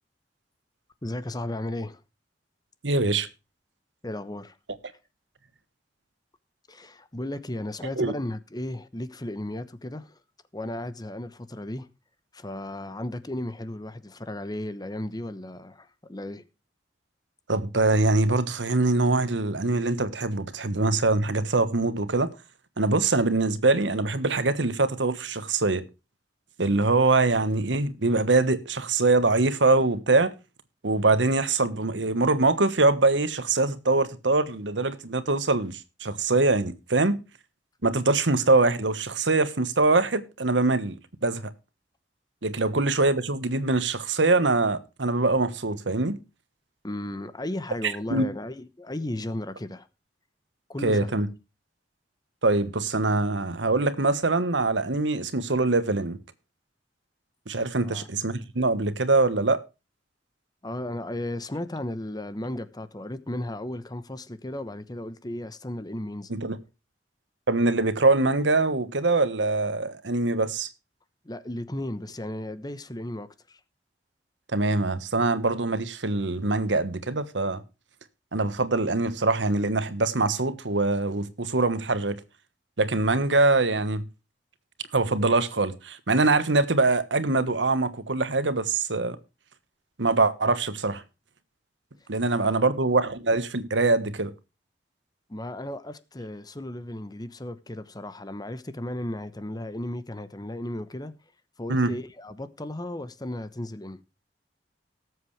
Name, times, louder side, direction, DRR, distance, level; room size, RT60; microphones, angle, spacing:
voice 1, 1.0-2.0 4.0-4.5 6.7-10.2 10.5-11.9 12.3-16.4 46.8-49.9 50.7-51.1 57.8-58.1 60.6-66.4 71.2-73.6 92.4-92.7 95.3-101.1 101.6-104.0, left 1 dB, 20° left, 1.0 m, -35 dB
voice 2, 2.8-3.3 8.0-8.1 17.5-22.3 22.8-25.8 26.6-30.3 30.8-37.2 37.8-41.0 41.2-41.4 42.4-46.2 47.8-48.2 50.8-51.3 52.4-56.2 57.5-59.6 66.3-66.6 67.5-70.7 74.5-77.6 78.3-82.2 82.8-84.0 84.9-89.2 90.0-91.0 92.1-94.3 101.7-101.9, right 3 dB, 80° right, 1.3 m, -23 dB
18.5 x 7.9 x 3.2 m
head